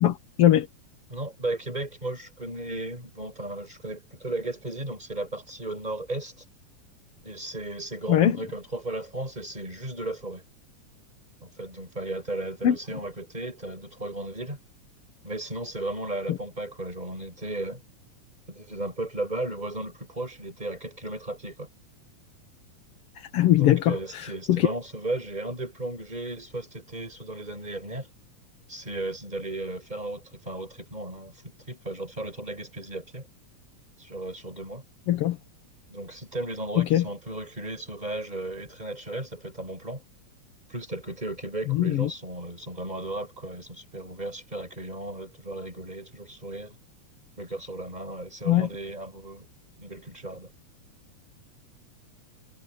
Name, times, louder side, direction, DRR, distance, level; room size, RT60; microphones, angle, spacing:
voice 1, 0.0-0.7 8.1-8.4 12.6-12.7 23.3-23.9 24.5-24.7 35.1-35.4 36.8-37.0 41.7-42.1 48.5-48.7, left 12 dB, 60° left, 1.8 m, -20 dB
voice 2, 1.1-6.3 7.2-10.4 11.4-14.6 15.2-17.8 18.5-21.7 23.5-28.1 28.7-31.3 31.7-33.3 34.0-34.8 35.9-40.0 40.7-46.8 47.4-49.5 49.8-50.5, right 2 dB, 15° right, 7.8 m, -35 dB
omnidirectional pair, 3.3 m